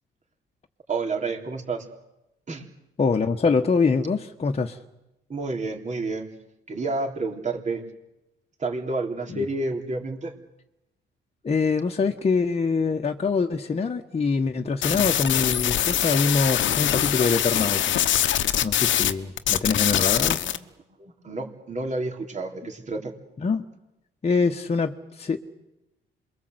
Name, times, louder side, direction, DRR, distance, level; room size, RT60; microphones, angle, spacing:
voice 1, 0.9-1.9 2.5-2.7 5.3-6.3 6.7-7.8 8.6-10.4 18.7-18.8 20.4-20.6 21.0-23.1, right 3 dB, 35° right, 2 dB, 3.9 m, -30 dB
voice 2, 3.0-4.8 9.3-9.5 11.4-17.9 18.6-20.4 23.4-23.6 24.2-25.4, left 4 dB, 30° left, 3 dB, 1.4 m, -24 dB
sound 1, 14.8-19.1 19.4-20.6, left 11 dB, 70° left, 1.1 m, -23 dB
27.0 x 23.0 x 8.1 m, 0.91 s
cardioid pair, 90°, 20 cm